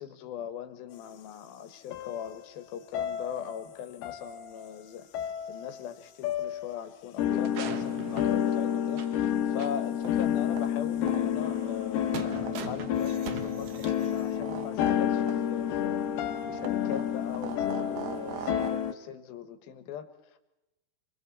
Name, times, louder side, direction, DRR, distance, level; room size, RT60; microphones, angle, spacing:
voice 1, 0.0-16.0 16.5-20.4, left 8 dB, 75° left, 10 dB, 3.2 m, -41 dB
sound 1, 1.9-2.6 2.9-3.7 4.0-4.8 5.1-5.9 6.2-6.7 7.2-18.9, left 10 dB, 90° left, 3.1 m, -30 dB
sound 2, 7.3-9.3 9.6-9.7 10.2-10.3 11.4-14.4, right 7 dB, 65° right, 1.6 m, -42 dB
sound 3, 10.0-18.7, right 10 dB, 80° right, 1.7 m, -44 dB
28.0 x 22.0 x 4.3 m, 0.95 s
omnidirectional pair, 4.5 m